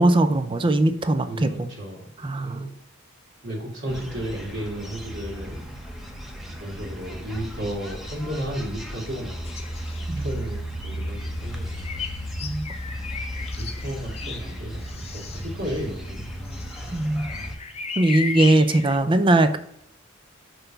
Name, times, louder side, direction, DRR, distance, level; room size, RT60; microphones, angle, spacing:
voice 1, 0.0-1.7 2.2-2.7 10.1-10.4 12.4-12.6 16.9-17.3 18.0-19.6, right 2 dB, 25° right, 10 dB, 0.5 m, -20 dB
voice 2, 1.2-2.7 3.4-5.6 6.5-9.8 10.2-12.1 13.3-16.2, right 1 dB, 60° right, -5 dB, 2.0 m, -34 dB
sound 1, 3.9-17.6, equal, ahead, 0.8 m, -35 dB
sound 2, 9.4-10.5 10.9-19.0, left 5 dB, 30° left, 0.6 m, -36 dB
5.9 x 3.4 x 5.5 m, 0.70 s
head